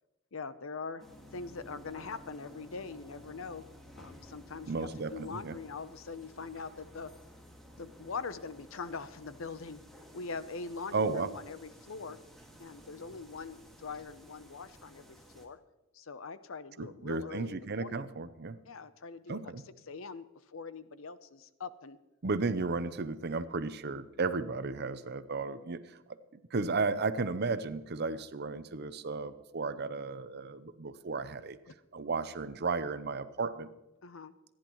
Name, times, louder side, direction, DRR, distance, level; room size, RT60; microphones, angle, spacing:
voice 1, 0.3-1.0 1.3-3.6 4.0-7.1 7.8-9.8 10.1-12.2 12.6-15.6 15.9-18.0 18.7-19.5 19.9-22.0 31.7-31.8 34.0-34.3, left 4 dB, 70° left, 13 dB, 0.7 m, -42 dB
sound 1, 1.0-15.5, equal, ahead, 1.9 m, -54 dB
voice 2, 4.7-5.6 10.9-11.3 16.8-18.6 19.3-19.6 22.2-26.0 26.3-31.6 31.9-33.7, right 4 dB, 50° right, 13 dB, 0.7 m, -34 dB
26.0 x 10.5 x 3.1 m, 1.0 s
head